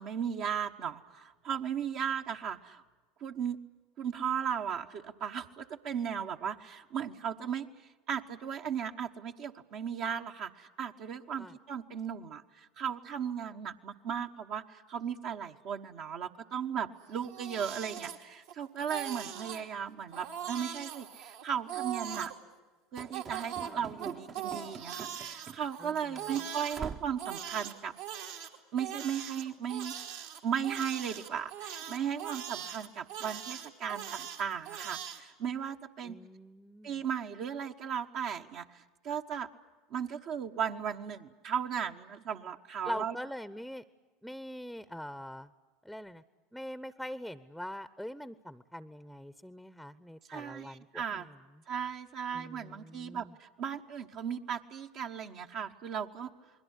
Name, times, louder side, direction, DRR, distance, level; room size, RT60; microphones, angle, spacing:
voice 1, 0.0-2.8 3.2-3.6 4.0-7.7 8.1-22.3 22.9-27.9 28.7-29.9 30.4-36.2 36.8-39.5 39.9-43.2 50.3-51.3 51.7-56.3, right 8 dB, 55° right, 3 dB, 1.1 m, -36 dB
Crying sobbing, 17.1-18.5 18.8-19.6 20.1-22.3 22.9-26.8 27.2-35.2, right 9 dB, 75° right, 2.8 m, -41 dB
Run / Slam, 23.0-25.9 26.1-26.3 26.7-27.2, right 6 dB, 35° right, 0.8 m, -45 dB
voice 2, 25.8-26.2 36.0-37.0 42.8-43.8 44.2-45.5 45.8-46.2 46.5-51.4 52.3-53.3, equal, ahead, 15 dB, 0.8 m, -43 dB
29.5 x 21.0 x 8.2 m, 1.3 s
hypercardioid pair, 75°, 0 cm